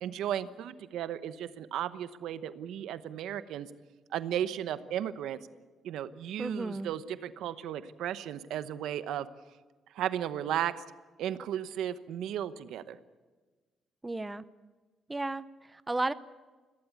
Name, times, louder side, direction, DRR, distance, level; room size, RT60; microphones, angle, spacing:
voice 1, 0.0-3.7 4.1-5.4 5.8-9.3 9.9-10.8 11.2-13.0, right 10 dB, 85° right, 12 dB, 0.9 m, -35 dB
voice 2, 6.4-6.9 14.0-14.4 15.1-16.1, right 2 dB, 15° right, 14 dB, 0.7 m, -34 dB
22.0 x 16.0 x 8.4 m, 1.3 s
cardioid pair, 90°, 0 cm